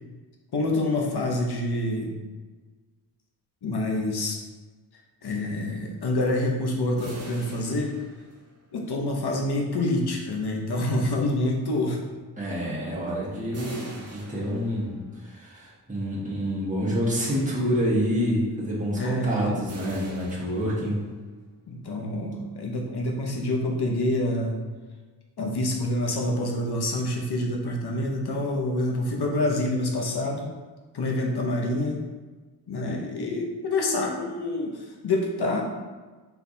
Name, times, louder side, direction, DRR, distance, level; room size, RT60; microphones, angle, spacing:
voice 1, 0.5-2.1 3.6-4.4 5.2-8.0 8.7-12.0 18.9-19.6 21.7-24.6 25.4-30.4 30.9-32.0 32.7-35.6, left 1 dB, 65° left, 1 dB, 0.9 m, -27 dB
sound 1, 7.0-8.8 13.5-15.2 19.7-21.3, right 2 dB, 35° right, 0.8 m, -43 dB
voice 2, 12.4-14.9 15.2-21.0, equal, 20° right, -7 dB, 1.4 m, -27 dB
4.7 x 3.3 x 2.7 m, 1.3 s
cardioid pair, 75°, 42 cm